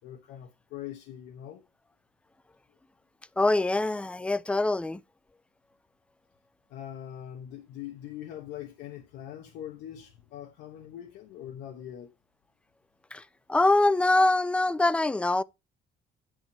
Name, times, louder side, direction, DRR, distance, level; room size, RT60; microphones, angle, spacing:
voice 1, 0.0-1.6 6.7-12.1, left 11 dB, 85° left, 1.1 m, -42 dB
voice 2, 3.4-5.0 13.1-13.2 13.5-15.4, left 2 dB, 5° left, 0.3 m, -24 dB
10.5 x 3.7 x 4.6 m
cardioid pair, 110°, 17 cm